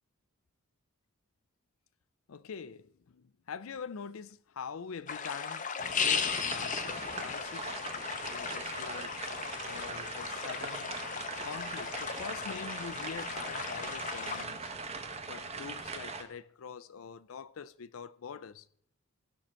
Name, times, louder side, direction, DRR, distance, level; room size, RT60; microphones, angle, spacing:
voice 1, 2.3-5.7 6.0-7.7 8.3-11.0 11.4-14.7 15.3-18.7, left 6 dB, 75° left, 0.5 m, -44 dB
sound 1, 5.1-14.4, left 6 dB, 35° left, 0.7 m, -36 dB
sound 2, 6.1-16.2, right 4 dB, 30° right, 1.0 m, -41 dB
17.0 x 6.4 x 4.4 m
head